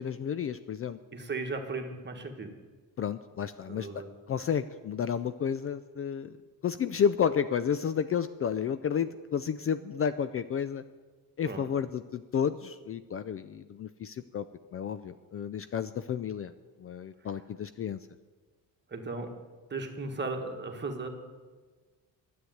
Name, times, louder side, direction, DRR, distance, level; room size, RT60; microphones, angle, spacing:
voice 1, 0.0-1.0 3.0-6.4 6.6-10.8 11.4-14.5 14.7-16.5 16.8-18.0, left 7 dB, 40° left, 13 dB, 0.4 m, -31 dB
voice 2, 1.1-2.5 3.7-4.1 11.4-11.9 18.9-19.3 19.7-21.1, right 3 dB, 30° right, 4 dB, 1.6 m, -36 dB
10.0 x 8.0 x 9.2 m, 1.4 s
cardioid pair, 110°, 37 cm